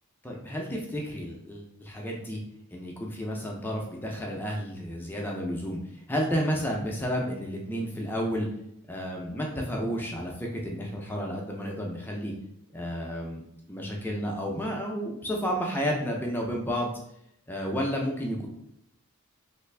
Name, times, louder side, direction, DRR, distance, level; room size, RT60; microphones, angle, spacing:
voice 1, 0.2-2.4 2.7-5.8 6.1-8.5 8.9-12.3 12.7-13.4 13.7-16.9 17.5-18.5, equal, 10° left, -1 dB, 0.4 m, -31 dB
3.2 x 2.4 x 3.2 m, 0.79 s
head